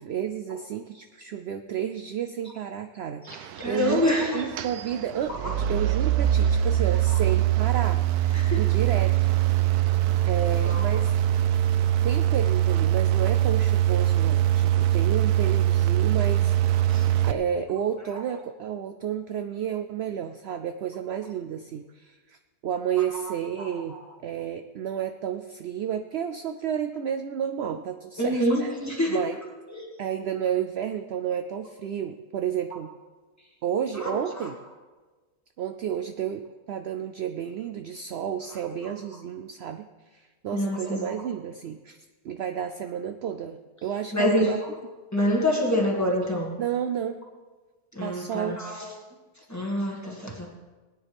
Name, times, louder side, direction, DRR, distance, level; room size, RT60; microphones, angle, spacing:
voice 1, 0.0-9.3 10.3-11.1 12.0-16.9 17.2-22.4 22.6-24.0 24.2-28.7 29.1-29.4 30.0-32.9 33.6-34.6 35.6-39.9 40.1-42.0 42.2-44.6 46.6-47.2 48.0-48.6, right 9 dB, 70° right, 8 dB, 0.6 m, -31 dB
voice 2, 3.2-4.4 5.4-5.6 8.3-8.6 10.6-10.8 16.9-17.1 18.1-18.2 28.2-29.2 29.8-29.9 34.0-34.5 40.5-41.0 44.1-44.7 45.1-46.6 48.0-48.9 49.5-50.5, left 1 dB, 10° left, -1 dB, 1.9 m, -26 dB
sound 1, 3.3-17.3, right 12 dB, 85° right, 1.1 m, -23 dB
19.0 x 9.9 x 3.5 m, 1.3 s
omnidirectional pair, 1.6 m